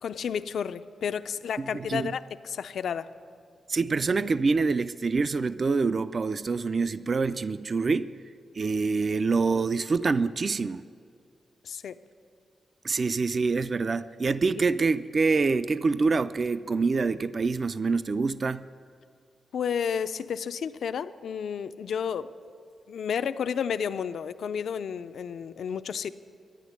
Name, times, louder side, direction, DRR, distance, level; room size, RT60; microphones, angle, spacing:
voice 1, 0.0-3.1 11.6-12.0 19.5-22.3 22.9-26.1, left 7 dB, 70° left, 12 dB, 0.4 m, -31 dB
voice 2, 1.7-2.1 3.7-8.1 8.6-10.8 12.8-18.7, right 4 dB, 40° right, 14 dB, 0.3 m, -26 dB
11.5 x 10.0 x 9.5 m, 2.3 s
wide cardioid pair, 130°, 0 cm